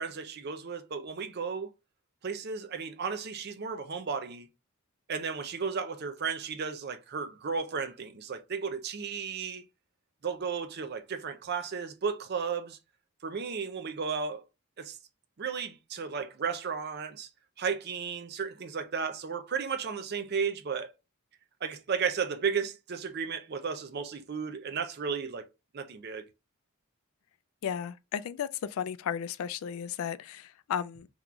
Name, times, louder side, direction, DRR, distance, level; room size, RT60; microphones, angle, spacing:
voice 1, 0.0-1.7 2.2-4.5 5.1-9.7 10.2-12.8 13.2-14.4 14.8-15.0 15.4-17.3 17.6-20.9 21.6-25.5 25.7-26.3, right 6 dB, 50° right, 0.5 m, -34 dB
voice 2, 27.6-31.1, left 8 dB, 75° left, 0.3 m, -34 dB
3.8 x 2.9 x 2.3 m
head